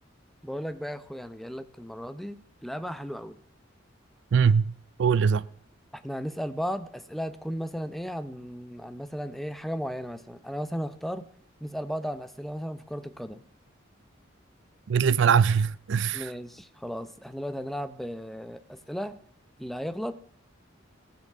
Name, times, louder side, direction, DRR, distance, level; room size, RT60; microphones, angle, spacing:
voice 1, 0.4-3.4 5.9-11.3 11.6-13.4 16.1-19.2 19.6-20.2, equal, ahead, 0.7 m, -35 dB
voice 2, 4.3-4.7 5.0-5.5 14.9-16.3, right 6 dB, 65° right, 0.4 m, -22 dB
18.0 x 6.1 x 6.6 m
head